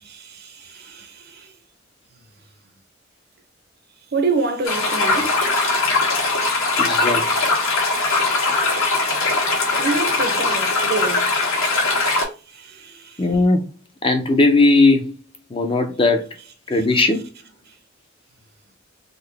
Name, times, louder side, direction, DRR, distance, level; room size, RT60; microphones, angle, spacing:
voice 1, 0.0-1.5 4.1-5.5 8.1-9.4 9.8-11.3 12.5-13.4 16.7-16.9, right 3 dB, 50° right, 0.6 m, -28 dB
sound 1, 4.6-12.2, left 3 dB, 85° left, 1.4 m, -20 dB
voice 2, 6.8-7.2 13.2-13.6 14.0-15.1 15.5-16.3 16.7-17.3, left 2 dB, 25° left, 0.5 m, -17 dB
3.7 x 2.1 x 3.3 m
head